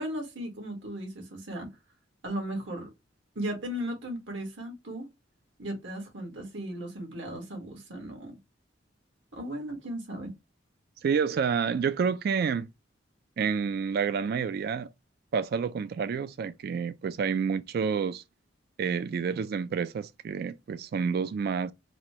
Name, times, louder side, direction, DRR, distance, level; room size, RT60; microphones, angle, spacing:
voice 1, 0.0-1.8 2.2-2.9 3.3-5.1 5.6-8.4 9.3-10.3, right 1 dB, 80° right, 1.7 m, -36 dB
voice 2, 11.0-12.7 13.4-14.9 15.3-18.2 18.8-21.7, right 6 dB, 55° right, 0.3 m, -29 dB
4.1 x 2.2 x 3.0 m
head